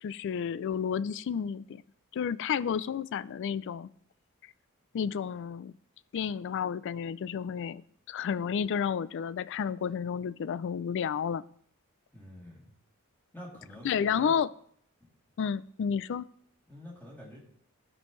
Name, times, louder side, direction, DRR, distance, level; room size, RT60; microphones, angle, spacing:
voice 1, 0.0-1.8 2.1-3.9 4.9-5.7 6.1-7.8 8.1-11.4 13.8-14.5 15.4-16.2, left 7 dB, 55° left, 18 dB, 0.3 m, -31 dB
voice 2, 12.1-12.7 13.3-14.3 16.7-17.4, left 1 dB, 10° left, -5 dB, 2.8 m, -47 dB
16.5 x 5.4 x 3.1 m, 0.66 s
head